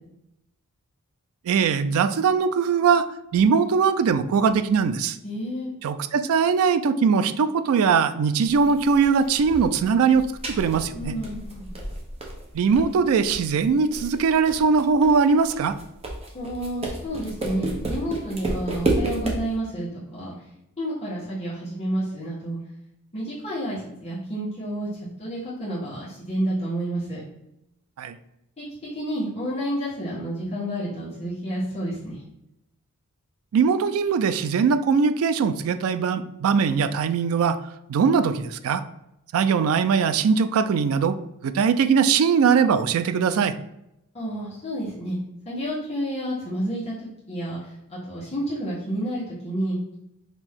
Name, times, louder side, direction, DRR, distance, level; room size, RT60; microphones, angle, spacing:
voice 1, 1.5-3.0 3.3-5.2 5.8-10.2 10.6-11.1 12.5-15.8 28.0-28.2 33.5-37.6 37.9-38.8 39.3-41.2 41.4-43.5, right 6 dB, 65° right, 12 dB, 0.3 m, -21 dB
voice 2, 5.2-5.7 10.9-11.8 16.3-20.3 20.8-22.6 23.1-27.2 28.6-28.7 28.9-32.2 44.1-45.2 45.4-46.9 47.3-49.9, right 1 dB, 30° left, -10 dB, 1.3 m, -30 dB
sound 1, 8.4-19.5, right 2 dB, 25° right, 0.7 m, -32 dB
5.1 x 2.7 x 3.5 m, 0.84 s
head